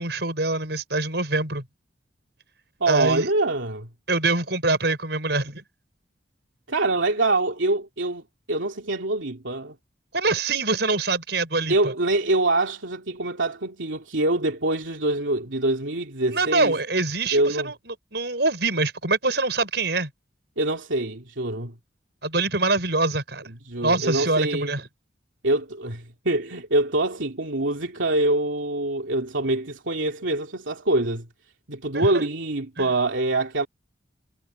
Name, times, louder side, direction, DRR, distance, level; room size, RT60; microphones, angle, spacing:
voice 1, 0.0-1.6 2.9-3.3 4.1-5.6 10.1-11.9 16.3-20.1 22.2-23.4 23.8-24.8 31.9-32.2 32.8-32.9, right 3 dB, 60° right, 6.4 m, -24 dB
voice 2, 2.8-3.9 6.7-8.2 8.5-9.7 11.7-16.8 17.3-17.7 20.6-21.7 23.5-24.7 25.4-31.3 31.7-33.7, right 2 dB, 85° right, 2.8 m, -25 dB
head